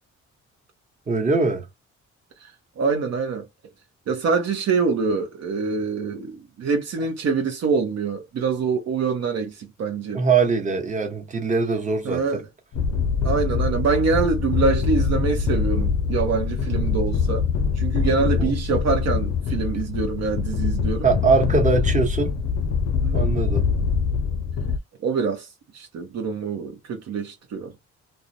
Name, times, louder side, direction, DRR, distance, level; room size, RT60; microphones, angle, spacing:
voice 1, 1.1-1.7 10.1-12.4 18.2-18.5 21.0-22.3 23.1-23.6, right 4 dB, 25° right, 1.0 m, -22 dB
voice 2, 2.8-3.4 4.1-10.2 12.0-12.4 13.2-17.4 17.8-21.1 23.0-23.3 25.0-25.5 25.7-27.7, right 5 dB, 60° right, 0.7 m, -25 dB
sound 1, 12.7-24.8, left 5 dB, 55° left, 0.5 m, -24 dB
2.3 x 2.0 x 2.6 m
cardioid pair, 90°, 30 cm